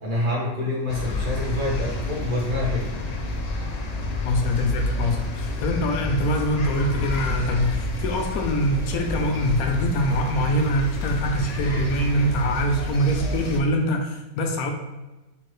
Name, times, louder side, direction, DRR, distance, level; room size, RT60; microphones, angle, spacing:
voice 1, 0.0-2.9, left 2 dB, 40° right, -5 dB, 1.3 m, -26 dB
sound 1, 0.9-13.6, left 2 dB, 65° left, 0.4 m, -29 dB
voice 2, 4.2-14.7, equal, 90° left, 3 dB, 1.1 m, -24 dB
4.5 x 3.7 x 3.1 m, 1.1 s
omnidirectional pair, 1.5 m